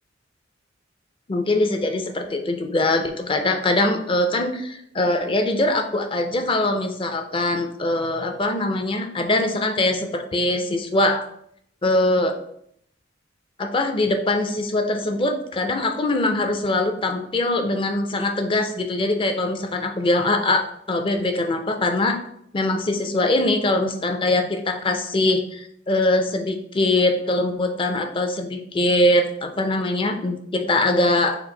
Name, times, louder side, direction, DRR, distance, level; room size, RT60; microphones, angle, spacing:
voice 1, 1.3-11.2 11.8-12.4 13.6-22.2 22.5-31.4, left 2 dB, 30° left, 6 dB, 0.5 m, -22 dB
4.4 x 2.5 x 3.8 m, 0.71 s
head